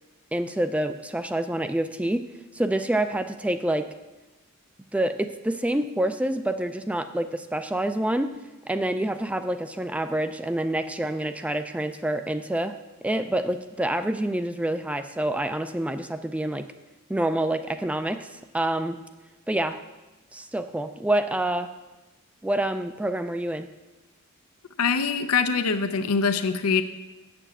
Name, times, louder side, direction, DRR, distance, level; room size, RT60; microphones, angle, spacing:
voice 1, 0.3-2.2 2.5-3.9 4.9-8.3 8.7-16.7 17.1-19.0 19.5-19.8 20.3-21.7 22.4-23.7, right 1 dB, 5° right, 9 dB, 0.4 m, -27 dB
voice 2, 24.8-26.8, left 5 dB, 75° left, 9 dB, 0.6 m, -23 dB
8.0 x 6.9 x 7.4 m, 1.1 s
head